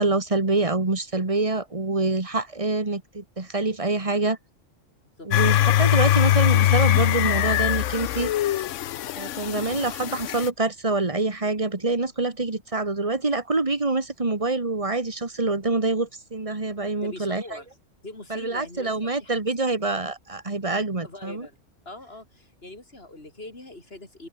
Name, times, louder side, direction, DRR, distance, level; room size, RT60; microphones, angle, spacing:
voice 1, 0.0-4.4 5.2-8.3 9.2-17.6 18.3-21.5, right 3 dB, 25° right, 2.1 m, -26 dB
sound 1, 5.3-10.5, left 12 dB, 75° left, 1.0 m, -22 dB
voice 2, 17.0-17.7 18.0-19.3 21.0-21.6 21.9-24.3, left 2 dB, 50° left, 5.2 m, -42 dB
omnidirectional pair, 1.3 m